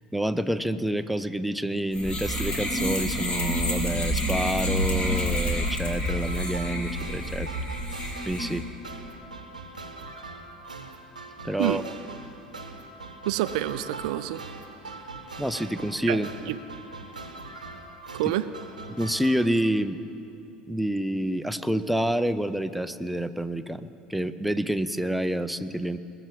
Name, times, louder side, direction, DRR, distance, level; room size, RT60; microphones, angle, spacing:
voice 1, 0.1-7.5 8.3-8.6 11.4-11.8 15.4-16.3 18.9-20.0 20.7-26.0, right 1 dB, ahead, 10 dB, 0.5 m, -28 dB
sound 1, 1.9-8.6, equal, 25° left, 2.3 m, -28 dB
sound 2, 4.7-19.5, right 3 dB, 90° right, 0.9 m, -42 dB
voice 2, 13.2-14.4 14.9-15.0 16.1-16.2 16.5-16.6 18.1-18.5, right 14 dB, 65° right, 14 dB, 0.4 m, -27 dB
20.5 x 6.9 x 7.7 m, 2.7 s
figure-of-eight pair, 65°, 4 cm